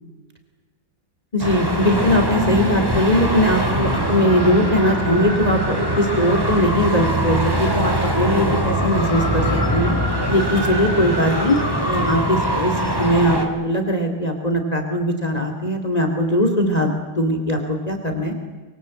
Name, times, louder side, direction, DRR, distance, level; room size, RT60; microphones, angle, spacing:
voice 1, 1.3-9.4 9.7-10.0 10.3-11.6 11.8-18.5, equal, 20° left, 5 dB, 2.6 m, -20 dB
Traffic noise roadway noise, 1.4-13.4, equal, 10° right, 3.1 m, -22 dB
25.5 x 23.5 x 7.8 m, 1.3 s
omnidirectional pair, 2.1 m